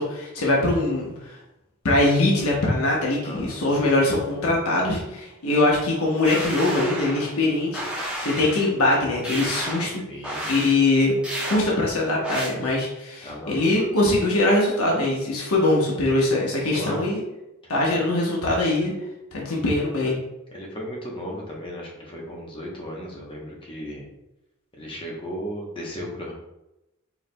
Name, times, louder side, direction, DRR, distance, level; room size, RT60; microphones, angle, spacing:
voice 1, 0.0-1.4 1.8-10.0 10.4-11.1 11.5-17.2 17.7-18.9 19.3-20.2, left 2 dB, 80° left, -3 dB, 1.0 m, -22 dB
voice 2, 3.1-3.6 10.0-10.5 13.2-13.7 16.6-17.0 17.9-18.2 20.5-24.1 24.7-26.3, equal, 25° left, -2 dB, 0.9 m, -35 dB
sound 1, 6.2-7.3 7.7-8.7 9.2-9.9 10.2-10.7 11.2-11.6 12.2-12.5, right 1 dB, 5° right, 0.9 m, -31 dB
4.6 x 4.1 x 2.2 m, 0.91 s
head